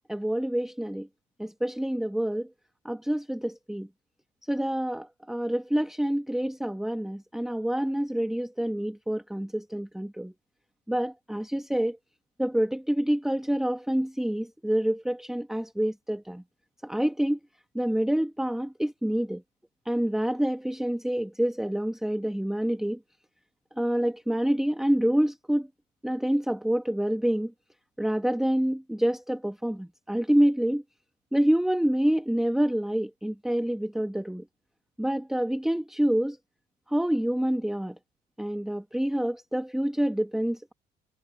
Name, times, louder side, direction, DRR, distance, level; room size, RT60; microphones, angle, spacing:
voice 1, 0.1-1.1 1.4-2.5 2.8-3.9 4.5-10.3 10.9-12.0 12.4-16.4 16.8-17.4 17.7-19.4 19.8-23.0 23.8-25.7 26.0-27.5 28.0-30.8 31.3-34.4 35.0-36.4 36.9-37.9 38.4-40.7, right 1 dB, ahead, 1.1 m, -27 dB
cardioid pair, 110°, 17 cm